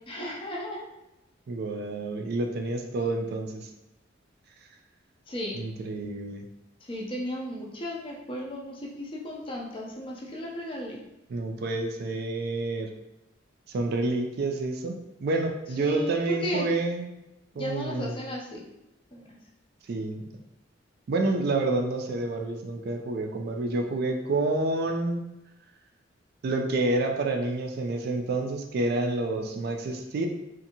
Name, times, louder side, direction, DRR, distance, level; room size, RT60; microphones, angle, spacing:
voice 1, 0.1-0.9 5.3-5.6 6.9-11.0 15.8-16.7 17.5-18.6 19.1-19.4, equal, 25° left, -2 dB, 0.4 m, -35 dB
voice 2, 1.5-3.7 5.5-6.5 11.3-12.9 13.7-15.0 15.2-17.2 17.6-18.1 19.9-20.2 21.1-25.2 26.4-30.3, right 2 dB, 55° right, 3 dB, 0.3 m, -28 dB
2.6 x 2.5 x 2.7 m, 0.92 s
head